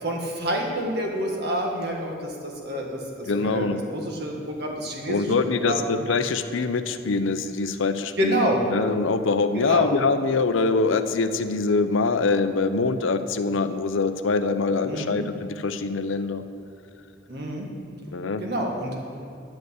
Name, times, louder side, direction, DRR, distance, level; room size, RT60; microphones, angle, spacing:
voice 1, 0.0-5.3 5.6-5.9 8.2-8.6 9.5-9.9 14.8-15.2 17.3-17.7 18.4-18.9, right 1 dB, 55° right, 0 dB, 1.6 m, -28 dB
voice 2, 3.3-3.8 5.1-8.4 8.7-16.4 18.1-18.4, left 4 dB, 80° left, 10 dB, 0.6 m, -24 dB
10.0 x 5.4 x 8.0 m, 2.6 s
head